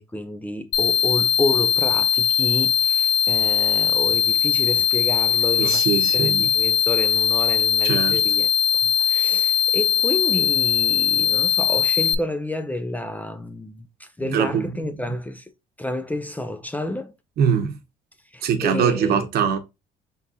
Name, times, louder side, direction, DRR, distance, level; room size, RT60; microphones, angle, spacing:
voice 1, 0.0-5.9 6.1-8.5 9.0-15.4 15.8-17.1 18.3-19.3, left 2 dB, 10° left, 0.4 m, -30 dB
sound 1, 0.7-12.1, left 8 dB, 65° left, 0.5 m, -20 dB
voice 2, 5.6-6.5 7.8-8.2 14.2-14.7 17.4-17.8 18.4-19.6, right 7 dB, 65° right, 0.9 m, -22 dB
4.0 x 3.7 x 2.6 m
cardioid pair, 110°, 17 cm